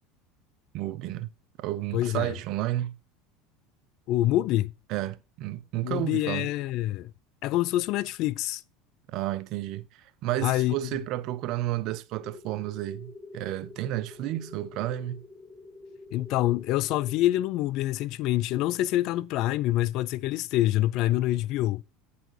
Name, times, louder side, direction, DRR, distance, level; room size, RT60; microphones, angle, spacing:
voice 1, 0.7-1.3 1.6-2.9 4.9-6.5 9.1-15.2, right 15 dB, 60° right, 0.6 m, -32 dB
voice 2, 1.9-2.3 4.1-4.7 5.8-7.1 7.4-8.6 10.4-11.0 16.1-21.8, left 15 dB, 60° left, 0.4 m, -26 dB
sound 1, 12.2-17.2, left 3 dB, ahead, 2.9 m, -47 dB
9.0 x 4.2 x 4.4 m
hypercardioid pair, 85°, 0 cm